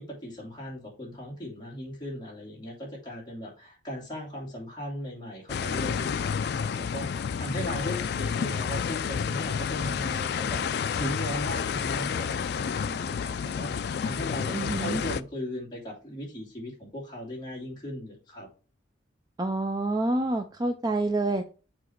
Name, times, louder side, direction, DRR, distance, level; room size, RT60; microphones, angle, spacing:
voice 1, 0.0-10.6 11.0-18.5, equal, 20° left, -4 dB, 2.9 m, -38 dB
sound 1, 5.5-15.2, left 6 dB, 55° left, 0.3 m, -30 dB
voice 2, 14.5-15.0 19.4-21.4, right 2 dB, 20° right, 6 dB, 0.4 m, -27 dB
7.0 x 4.1 x 4.5 m, 0.35 s
head